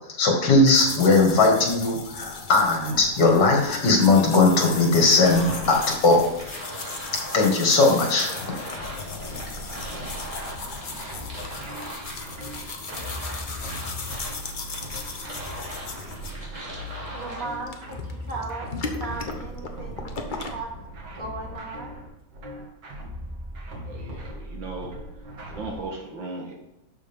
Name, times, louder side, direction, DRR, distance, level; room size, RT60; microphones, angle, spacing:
voice 1, 0.2-6.3 7.3-8.3 8.6-8.7, left 3 dB, 60° left, 1 dB, 2.5 m, -19 dB
sound 1, 0.7-20.5, left 4 dB, 40° left, 0.7 m, -37 dB
sound 2, 4.6-17.6, right 1 dB, 15° right, 2.7 m, -40 dB
sound 3, 9.2-25.8, equal, 65° right, 2.7 m, -39 dB
voice 2, 17.1-20.7 21.2-22.0, right 3 dB, 45° right, -1 dB, 2.3 m, -37 dB
voice 3, 23.8-24.9 25.5-26.5, right 3 dB, 80° right, 0 dB, 2.2 m, -36 dB
12.0 x 6.2 x 3.7 m, 0.90 s
omnidirectional pair, 2.1 m